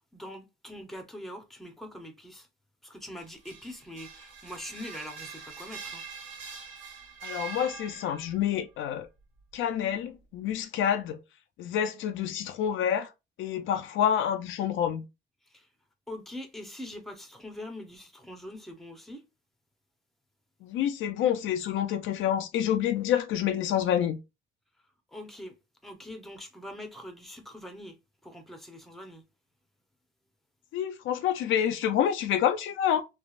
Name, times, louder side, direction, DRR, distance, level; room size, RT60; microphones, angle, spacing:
voice 1, 0.1-2.5 2.8-6.0 15.5-15.7 16.1-19.2 25.1-25.5 25.8-28.0 28.2-29.2, left 1 dB, ahead, 0.8 m, -43 dB
sound 1, 3.2-8.4, right 5 dB, 85° right, 1.4 m, -43 dB
voice 2, 7.2-9.1 9.5-11.2 11.6-13.1 13.4-15.0 20.6-24.2 30.7-33.0, left 9 dB, 80° left, 0.5 m, -28 dB
3.2 x 2.4 x 2.4 m
cardioid pair, 90°, 20 cm